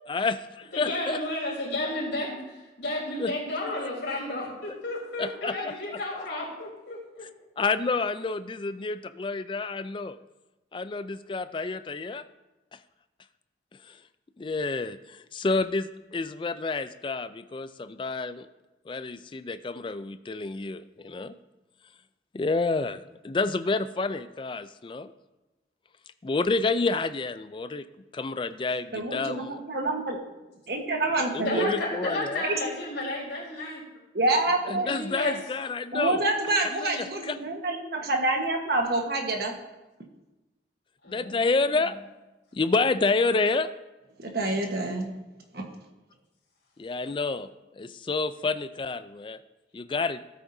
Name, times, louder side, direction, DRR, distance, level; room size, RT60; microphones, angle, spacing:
voice 1, 0.1-1.2 3.2-3.3 5.2-6.4 7.6-10.2 10.7-12.2 13.8-14.0 14.4-18.5 18.9-21.3 22.3-25.1 26.2-27.8 28.1-29.6 31.3-32.4 34.7-36.2 36.8-37.4 41.1-42.0 42.5-43.7 46.8-47.5 47.7-49.4 49.7-50.2, left 3 dB, 25° left, 12 dB, 0.3 m, -29 dB
voice 2, 0.7-7.2 31.4-33.8 34.8-35.3 41.0-41.8, left 1 dB, 85° left, -4 dB, 3.8 m, -32 dB
voice 3, 28.9-30.2 30.7-31.7 32.4-32.6 34.1-34.9 35.9-39.5 44.2-45.1 45.5-45.6, right 2 dB, 60° right, 2 dB, 1.3 m, -27 dB
13.5 x 8.5 x 2.7 m, 1.1 s
head